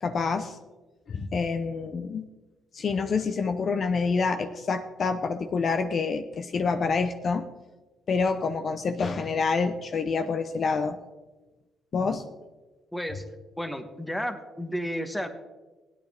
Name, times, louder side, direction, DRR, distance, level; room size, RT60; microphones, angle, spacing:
voice 1, 0.0-0.5 1.1-2.3 2.7-7.4 8.1-11.0 11.9-12.2, left 4 dB, 50° left, 8 dB, 0.8 m, -27 dB
voice 2, 12.9-13.2 13.6-15.3, equal, 5° left, 7 dB, 1.2 m, -32 dB
16.5 x 9.4 x 3.5 m, 1.2 s
cardioid pair, 90°, 0 cm